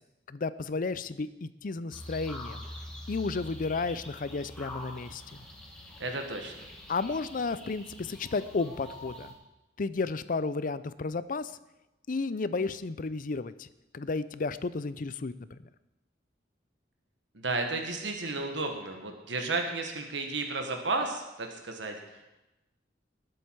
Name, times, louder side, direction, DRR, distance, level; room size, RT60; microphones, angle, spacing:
voice 1, 0.3-2.7 3.1-5.2 6.9-9.3 9.8-11.5 12.1-13.7 13.9-15.6, left 3 dB, 50° left, 15 dB, 0.5 m, -32 dB
sound 1, 1.9-9.3, left 1 dB, 5° left, 2.1 m, -45 dB
voice 2, 6.0-6.6 17.3-22.3, right 3 dB, 75° right, 4 dB, 1.5 m, -33 dB
20.0 x 7.9 x 4.7 m, 0.99 s
head